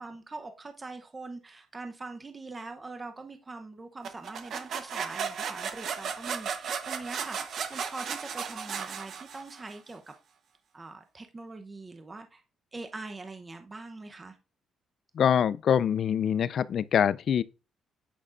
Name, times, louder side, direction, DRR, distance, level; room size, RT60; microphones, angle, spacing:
voice 1, 0.0-10.1 10.7-12.4 12.7-14.4, right 3 dB, 25° right, 0.7 m, -43 dB
sound 1, 4.0-9.7, right 7 dB, 65° right, 0.9 m, -35 dB
voice 2, 15.2-17.4, left 8 dB, 60° left, 0.3 m, -24 dB
8.7 x 5.3 x 2.5 m
cardioid pair, 90°, 0 cm